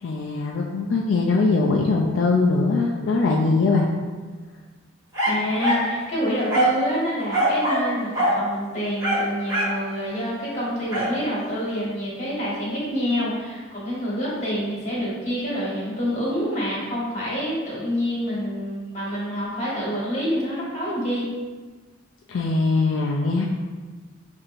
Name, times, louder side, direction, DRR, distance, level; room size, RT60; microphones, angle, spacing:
voice 1, 0.0-3.9 22.3-23.5, left 3 dB, 75° left, -1 dB, 0.4 m, -21 dB
sound 1, 5.1-5.9 6.5-6.8 7.3-8.4 9.0-9.8 10.9-11.1, right 1 dB, 20° right, 1.3 m, -22 dB
voice 2, 5.2-21.3, equal, 35° left, -7 dB, 1.4 m, -27 dB
5.5 x 2.7 x 2.5 m, 1.4 s
head